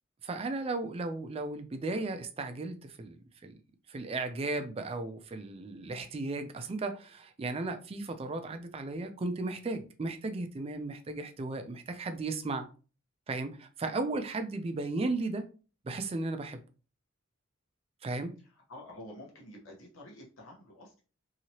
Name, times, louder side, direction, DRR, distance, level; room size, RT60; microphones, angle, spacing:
voice 1, 0.2-3.2 3.4-3.5 3.9-12.7 13.3-15.5 15.8-16.6 18.0-18.3, right 3 dB, 30° right, 0.3 m, -35 dB
voice 2, 18.4-21.0, left 1 dB, 80° left, 1.0 m, -49 dB
2.9 x 2.8 x 2.8 m
head